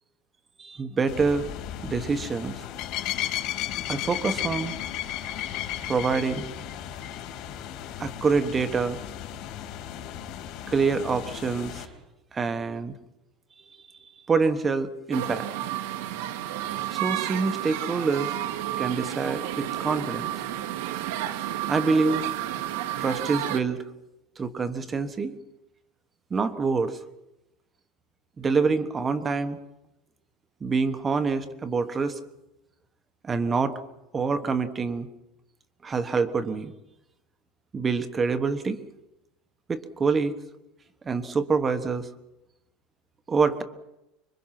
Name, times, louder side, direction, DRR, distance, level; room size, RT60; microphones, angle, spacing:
voice 1, 0.6-1.5 1.8-2.6 3.9-4.8 5.9-6.4 8.0-9.0 10.7-11.9 12.3-12.9 14.3-15.5 16.9-18.3 18.8-20.3 21.7-22.2 23.0-23.8 24.4-25.3 26.3-27.0 28.4-29.6 30.6-32.2 33.2-33.8 34.1-35.1 35.8-36.7 37.7-38.8 39.7-40.3 41.0-42.1 43.3-43.6, right 4 dB, 15° right, 10 dB, 1.2 m, -26 dB
sound 1, 1.1-11.8, left 11 dB, 50° left, 3.7 m, -35 dB
sound 2, 15.1-23.6, right 12 dB, 75° right, 1.9 m, -31 dB
26.0 x 23.5 x 6.0 m, 0.92 s
supercardioid pair, 165°, 0 cm